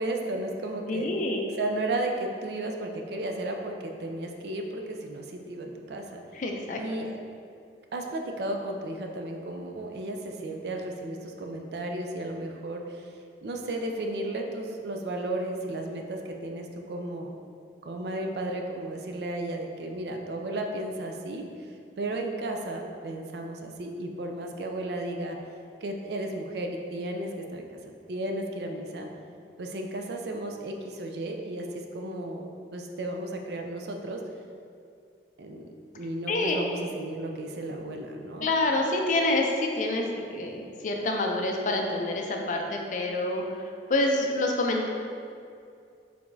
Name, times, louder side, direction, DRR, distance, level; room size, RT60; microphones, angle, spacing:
voice 1, 0.0-1.1 1.6-6.2 6.8-7.2 7.9-13.1 13.4-17.3 17.8-25.4 25.8-27.7 28.1-29.1 29.6-34.2 35.4-38.5, right 1 dB, 65° right, 3 dB, 0.4 m, -34 dB
voice 2, 0.9-1.4 6.3-7.0 36.3-36.5 38.4-44.9, left 2 dB, 45° left, 2 dB, 0.4 m, -27 dB
4.7 x 3.4 x 2.6 m, 2.4 s
head